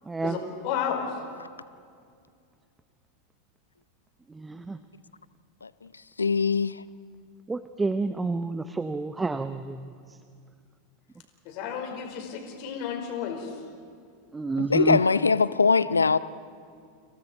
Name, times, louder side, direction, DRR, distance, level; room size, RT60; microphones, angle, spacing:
voice 1, 0.2-1.2 11.4-13.6, left 7 dB, 50° left, 4 dB, 5.0 m, -32 dB
voice 2, 4.4-4.8 7.5-9.9 14.3-15.0, right 3 dB, 15° right, 11 dB, 0.8 m, -29 dB
voice 3, 6.2-6.8 14.6-16.2, left 4 dB, 85° left, 17 dB, 0.6 m, -22 dB
29.5 x 28.5 x 4.6 m, 2.3 s
figure-of-eight pair, 85°, 0 cm